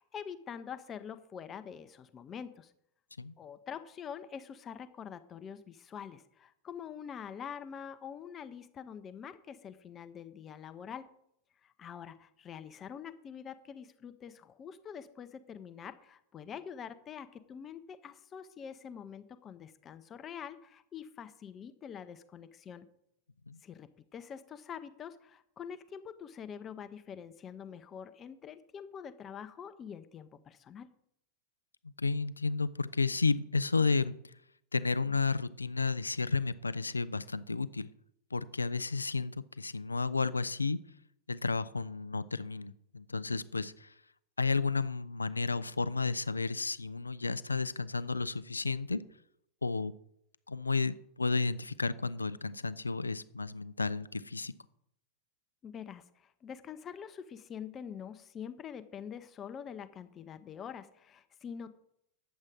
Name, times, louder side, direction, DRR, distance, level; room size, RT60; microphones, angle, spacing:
voice 1, 0.0-2.7 3.4-11.1 11.6-22.9 23.6-30.9 55.6-61.8, left 7 dB, 25° left, 11 dB, 0.6 m, -45 dB
voice 2, 32.0-34.1 34.7-37.9 38.3-40.8 41.3-43.9 44.4-49.0 49.6-49.9 50.5-54.5, left 4 dB, 80° left, 17 dB, 0.4 m, -32 dB
9.1 x 7.4 x 4.8 m, 0.74 s
figure-of-eight pair, 90°, 0 cm